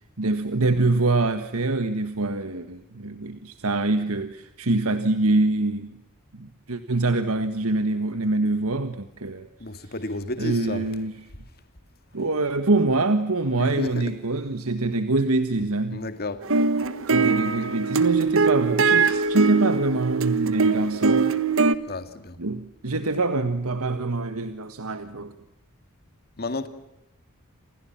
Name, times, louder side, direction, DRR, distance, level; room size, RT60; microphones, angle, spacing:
voice 1, 0.2-6.0 6.3-9.5 10.4-11.1 12.1-16.1 17.1-21.3 22.4-25.3, right 2 dB, 85° right, 1.6 m, -25 dB
voice 2, 9.6-10.9 13.6-14.1 15.9-16.5 21.9-22.4 26.4-26.7, left 2 dB, 45° left, 2.1 m, -32 dB
sound 1, 16.4-21.8, right 4 dB, 65° right, 1.4 m, -22 dB
29.5 x 27.5 x 5.9 m
head